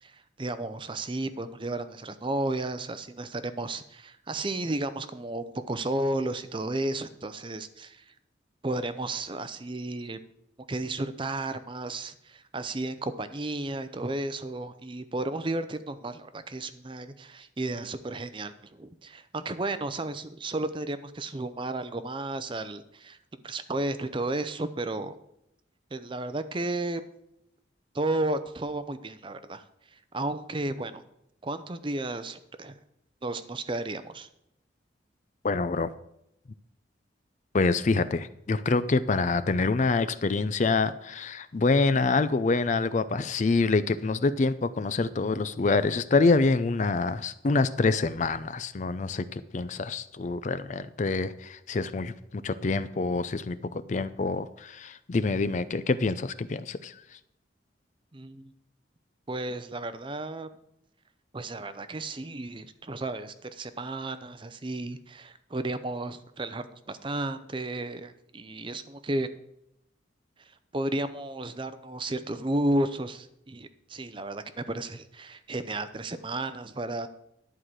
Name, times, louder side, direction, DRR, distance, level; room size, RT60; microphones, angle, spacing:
voice 1, 0.0-8.0 8.6-10.2 10.7-23.2 23.4-25.2 25.9-27.0 27.9-29.6 30.1-31.0 31.4-32.7 33.2-34.3 58.1-58.5 59.3-60.5 61.3-69.3 70.7-77.1, right 2 dB, 25° right, 11 dB, 0.6 m, -33 dB
voice 2, 35.4-35.9 37.5-57.0, left 3 dB, 40° left, 13 dB, 0.4 m, -26 dB
11.0 x 4.8 x 7.5 m, 0.79 s
head